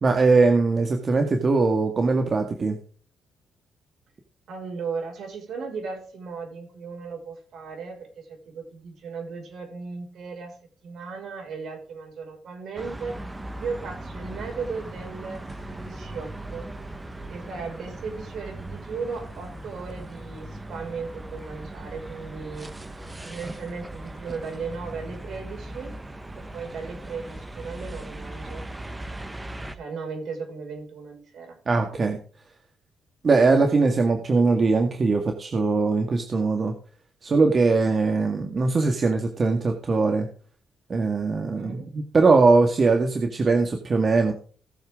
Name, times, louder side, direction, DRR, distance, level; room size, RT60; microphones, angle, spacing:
voice 1, 0.0-2.8 31.7-32.2 33.2-36.7 37.2-40.3 40.9-44.3, right 3 dB, 40° right, 4 dB, 1.9 m, -21 dB
voice 2, 4.5-10.5 10.8-13.2 13.6-16.7 17.3-26.0 26.4-28.6 29.7-31.6 41.5-41.9, right 5 dB, 65° right, 2 dB, 5.9 m, -36 dB
sound 1, 12.8-29.8, right 1 dB, 15° right, 1.4 m, -39 dB
18.0 x 7.2 x 3.8 m, 0.42 s
cardioid pair, 90°, 0 cm